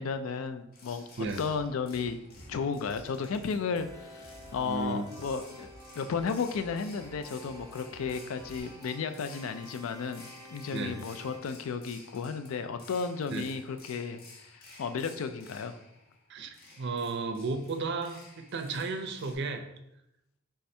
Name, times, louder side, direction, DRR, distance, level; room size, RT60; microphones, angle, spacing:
voice 1, 0.0-2.2 2.5-5.7 6.0-15.8, left 5 dB, 85° left, 10 dB, 0.4 m, -34 dB
sound 1, 0.7-19.4, left 2 dB, 45° left, 0.8 m, -54 dB
sound 2, 1.4-8.6, equal, ahead, 0.6 m, -53 dB
sound 3, 3.7-11.4, equal, 20° right, 0.9 m, -50 dB
voice 2, 4.5-5.0 10.7-11.0 13.3-13.4 16.3-19.7, right 3 dB, 55° right, 6 dB, 0.5 m, -34 dB
3.4 x 3.3 x 4.2 m, 0.85 s
head